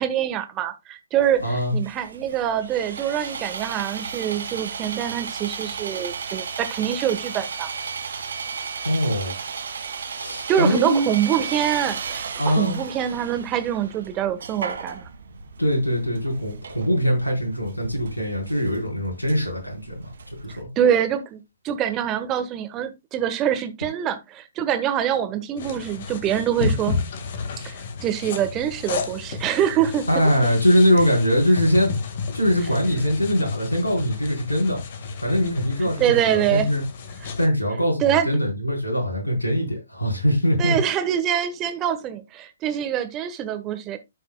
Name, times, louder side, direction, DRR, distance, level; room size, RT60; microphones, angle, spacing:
voice 1, 0.0-7.7 10.5-15.1 20.8-27.0 27.6-30.1 35.8-36.7 37.2-37.3 38.0-38.3 40.6-44.0, right 10 dB, 20° right, 1.2 m, -25 dB
Sawing, 1.2-20.6, right 5 dB, 60° right, 1.5 m, -35 dB
voice 2, 1.4-1.8 8.8-9.4 10.1-11.0 12.4-12.8 15.6-20.1 20.4-20.7 30.1-31.9 32.3-34.8 35.2-36.0 36.3-36.8 37.4-40.8, equal, 80° left, 4.1 m, -22 dB
sound 1, 25.6-37.5, left 4 dB, 45° left, 1.7 m, -32 dB
13.5 x 5.8 x 2.2 m
figure-of-eight pair, 125°, 0 cm